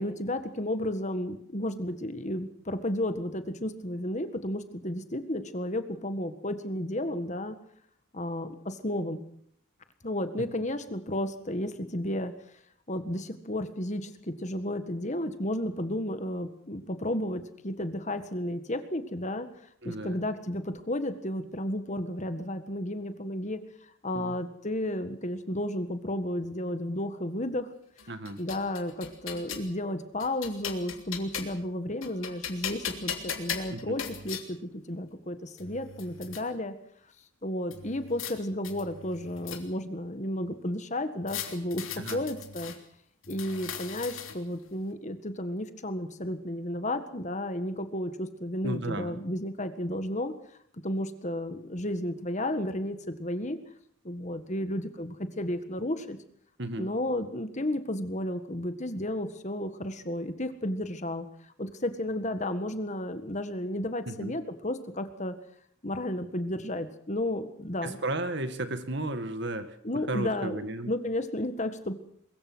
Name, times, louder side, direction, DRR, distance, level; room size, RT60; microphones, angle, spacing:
voice 1, 0.0-7.6 8.1-9.2 10.0-12.3 12.9-19.5 19.8-23.6 24.0-27.7 28.4-36.7 37.4-41.8 42.1-42.7 43.3-50.3 50.8-53.6 54.0-56.2 56.8-61.3 61.6-65.3 65.8-68.0 69.8-71.9, left 1 dB, 35° left, 9 dB, 1.7 m, -32 dB
voice 2, 19.8-20.2 24.1-24.3 28.1-28.4 33.7-34.0 42.0-42.2 48.6-49.2 56.6-56.9 64.1-64.4 67.8-69.8 70.1-70.9, right 2 dB, 55° right, 9 dB, 2.1 m, -34 dB
sound 1, 28.0-29.7 30.2-31.7 32.0-34.4 35.2-35.3 35.6-36.4 37.7-38.3 38.6-39.9 41.3-42.8 43.2-44.6, left 7 dB, 70° left, 3.2 m, -38 dB
23.0 x 22.0 x 6.3 m, 0.64 s
head